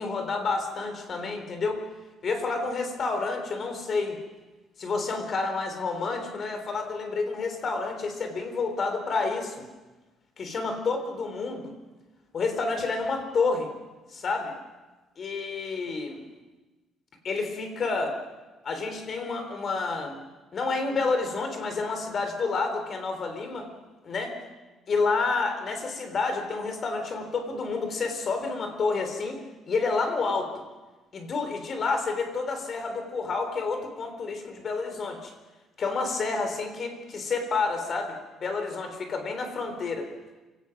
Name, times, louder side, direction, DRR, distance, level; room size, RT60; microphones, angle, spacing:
voice 1, 0.0-1.8 2.2-4.2 4.8-9.6 10.4-11.7 12.3-13.7 14.1-14.5 15.2-16.2 17.2-18.2 18.6-20.2 20.5-23.7 24.0-24.4 24.9-30.6 31.1-35.3 35.8-40.1, left 4 dB, 40° left, 6 dB, 3.7 m, -29 dB
28.0 x 17.5 x 6.1 m, 1.2 s
cardioid pair, 145°, 0 cm